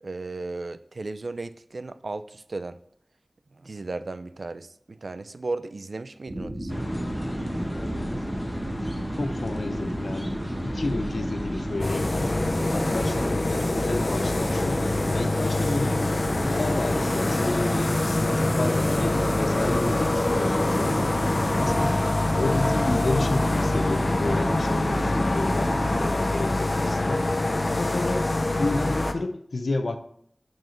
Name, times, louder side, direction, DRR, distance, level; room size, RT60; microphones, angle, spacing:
voice 1, 0.0-2.8 3.5-6.8, right 3 dB, 75° right, 0.4 m, -35 dB
sound 1, 6.3-26.1, right 1 dB, 25° right, 1.4 m, -32 dB
sound 2, 6.7-13.2, equal, 10° left, 1.3 m, -34 dB
voice 2, 7.8-8.6 9.2-10.4 10.6-12.3 12.7-14.8 15.1-16.0 16.4-21.1 21.6-22.0 22.2-27.3 27.7-28.3 28.6-30.0, left 2 dB, 90° left, 0.8 m, -31 dB
sound 3, 11.8-29.1, left 2 dB, 50° left, 0.6 m, -25 dB
6.7 x 6.5 x 4.4 m
wide cardioid pair, 65°, 0 cm